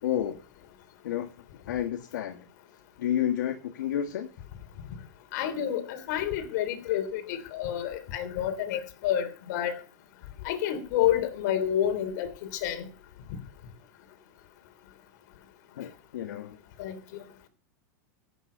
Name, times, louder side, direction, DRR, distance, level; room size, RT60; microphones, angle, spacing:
voice 1, 0.0-0.4 1.0-1.3 1.7-2.4 3.0-4.3 15.8-16.6, left 10 dB, 80° left, 1.6 m, -30 dB
voice 2, 5.3-9.8 10.4-12.9 16.8-17.0, left 10 dB, 65° left, 3.4 m, -29 dB
15.5 x 9.2 x 5.7 m
supercardioid pair, 125°, 10 cm